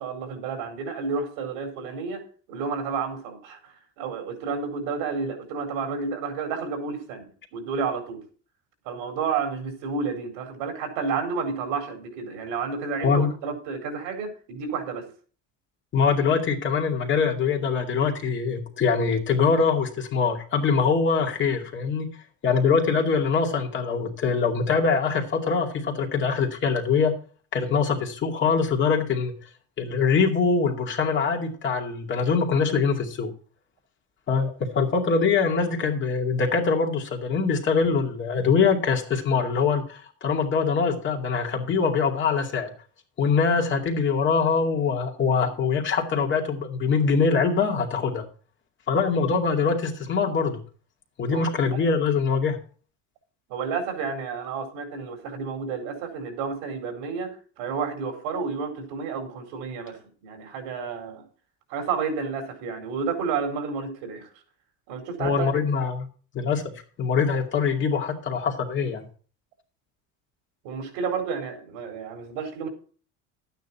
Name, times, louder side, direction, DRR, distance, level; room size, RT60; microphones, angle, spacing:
voice 1, 0.0-8.2 8.8-15.1 51.3-51.8 53.5-61.2 61.7-64.3 64.9-65.6 70.6-72.7, right 5 dB, 85° right, 5 dB, 4.3 m, -31 dB
voice 2, 15.9-27.1 27.5-29.3 29.8-33.3 34.3-42.7 43.2-48.3 48.9-50.6 51.2-52.6 65.2-66.1 66.3-66.7 67.0-69.0, left 5 dB, 35° left, 2 dB, 2.4 m, -23 dB
12.0 x 9.3 x 4.2 m, 0.40 s
cardioid pair, 150°, 33 cm